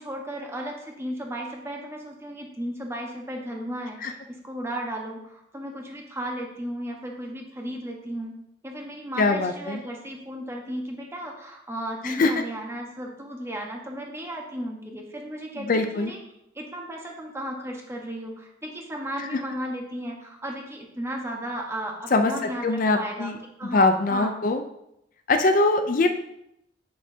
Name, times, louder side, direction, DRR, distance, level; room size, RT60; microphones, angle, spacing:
voice 1, 0.0-8.4 8.6-16.2 16.5-23.3 23.6-24.3, equal, 15° right, 0 dB, 1.2 m, -35 dB
voice 2, 9.2-9.8 12.0-12.3 15.6-16.1 19.3-19.4 22.1-22.3 22.6-23.4 23.7-24.6 25.3-26.1, left 3 dB, 45° left, 7 dB, 0.5 m, -22 dB
8.6 x 7.1 x 2.8 m, 0.81 s
head